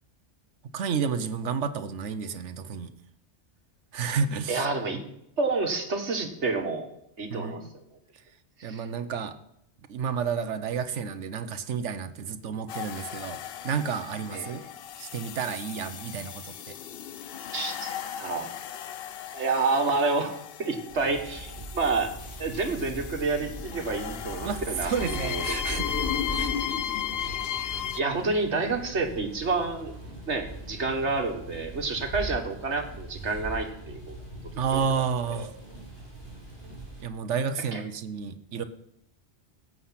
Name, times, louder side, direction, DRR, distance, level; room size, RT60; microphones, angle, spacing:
voice 1, 0.7-2.9 3.9-4.6 7.3-7.6 8.6-9.3 9.9-13.4 13.6-14.6 15.0-16.7 24.4-25.9 26.3-26.5 34.6-35.5 37.0-38.6, right 6 dB, 85° right, 11 dB, 1.2 m, -31 dB
voice 2, 4.5-5.0 5.4-6.9 7.2-7.6 8.6-8.8 14.3-14.5 17.5-18.5 19.3-20.3 20.6-22.1 22.4-26.0 26.6-26.8 28.0-29.9 30.3-34.2 34.7-34.8 35.3-35.5 37.7-37.8, right 3 dB, 70° right, 4 dB, 2.0 m, -29 dB
sound 1, 12.7-28.0, left 9 dB, 60° left, 0.8 m, -35 dB
sound 2, 20.9-37.0, right 1 dB, 45° left, 4.5 m, -40 dB
17.5 x 7.7 x 5.8 m, 0.77 s
omnidirectional pair, 1.2 m